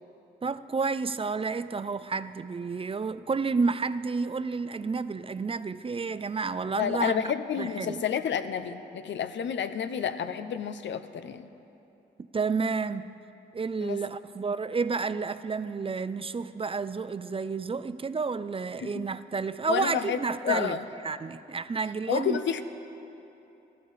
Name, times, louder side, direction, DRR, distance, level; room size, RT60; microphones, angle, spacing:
voice 1, 0.4-7.2 7.6-8.0 12.3-13.2 13.5-20.8 21.0-22.4, right 4 dB, 30° right, 0.4 m, -30 dB
voice 2, 6.8-11.5 13.8-14.0 18.8-19.0 19.7-20.9 22.1-22.6, left 8 dB, 75° left, 0.6 m, -30 dB
14.0 x 12.5 x 4.1 m
cardioid pair, 55°, 19 cm